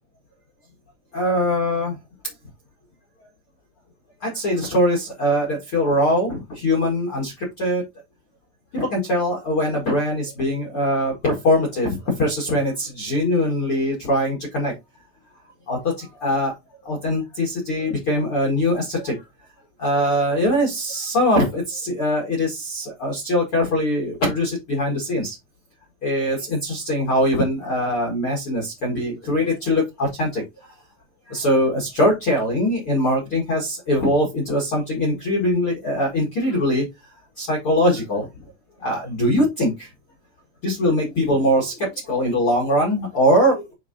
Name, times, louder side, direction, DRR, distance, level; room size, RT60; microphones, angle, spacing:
voice 1, 1.1-2.0 4.2-7.8 8.7-14.7 15.7-16.5 16.8-19.3 19.8-25.3 26.0-30.7 31.3-36.8 37.4-38.3 38.8-39.9 40.6-43.7, equal, 75° left, -3 dB, 1.2 m, -22 dB
9.5 x 3.8 x 2.7 m, 0.21 s
omnidirectional pair, 5.7 m